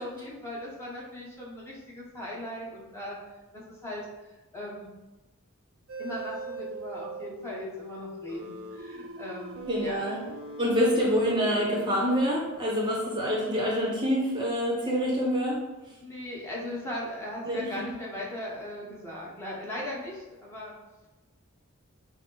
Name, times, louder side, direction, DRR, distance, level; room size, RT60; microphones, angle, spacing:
voice 1, 0.0-3.2 3.5-4.9 6.0-10.0 15.8-20.7, left 1 dB, 10° left, -5 dB, 0.9 m, -38 dB
sound 1, 5.9-12.2, right 2 dB, 70° right, 0.5 m, -40 dB
voice 2, 9.7-10.2 10.6-15.6 17.5-17.7, equal, 20° right, -4 dB, 0.8 m, -26 dB
6.2 x 2.1 x 3.8 m, 1.1 s
head